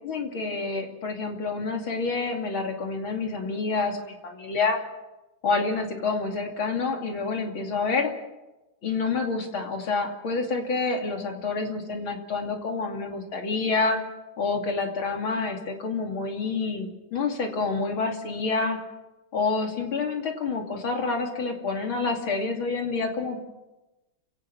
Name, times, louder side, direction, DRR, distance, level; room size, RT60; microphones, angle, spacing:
voice 1, 0.1-4.8 5.4-8.1 8.8-14.0 14.4-18.8 19.3-23.4, left 4 dB, 90° left, 2 dB, 3.5 m, -28 dB
29.0 x 17.5 x 6.0 m, 1.0 s
omnidirectional pair, 2.2 m